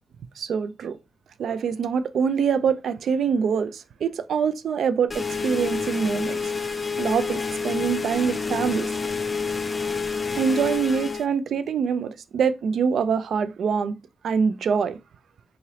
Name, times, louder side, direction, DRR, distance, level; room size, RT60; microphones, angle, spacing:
voice 1, 0.4-1.0 1.4-6.5 7.0-8.9 10.4-14.0 14.2-15.0, right 6 dB, 65° right, 0.3 m, -24 dB
sound 1, 5.1-11.3, left 5 dB, 20° left, 0.3 m, -28 dB
3.8 x 2.9 x 2.8 m
wide cardioid pair, 155°, 0 cm